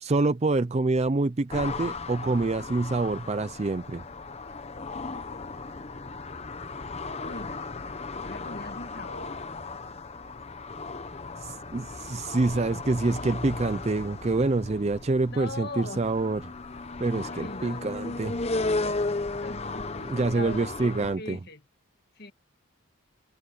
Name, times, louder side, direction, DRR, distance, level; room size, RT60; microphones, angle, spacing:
voice 1, 0.0-4.0 11.4-16.5 17.0-18.4 20.0-21.4, right 3 dB, 30° right, 0.4 m, -26 dB
sound 1, 1.5-21.2, left 3 dB, 30° left, 0.9 m, -35 dB
voice 2, 7.2-7.9 8.2-9.5 15.2-16.1 17.2-18.0 19.4-20.1 20.3-21.6 22.2-22.3, left 2 dB, 45° left, 2.0 m, -40 dB
head